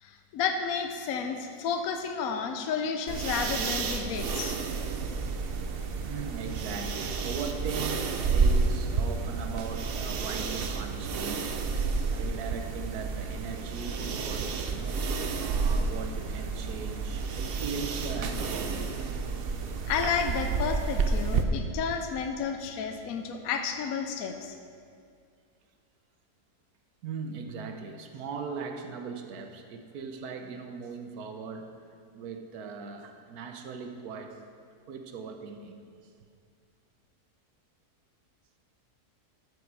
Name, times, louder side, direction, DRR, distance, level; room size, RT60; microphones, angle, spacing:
voice 1, 0.0-4.6 19.9-24.5, left 6 dB, 65° left, 5 dB, 1.0 m, -31 dB
sound 1, 3.1-21.4, right 4 dB, 55° right, 0.7 m, -30 dB
voice 2, 6.0-11.6 12.1-19.0 19.4-19.5 27.0-31.7 32.1-34.4 34.9-35.8, right 5 dB, 70° right, 5 dB, 1.4 m, -39 dB
13.0 x 8.5 x 4.7 m, 2.3 s
omnidirectional pair, 1.7 m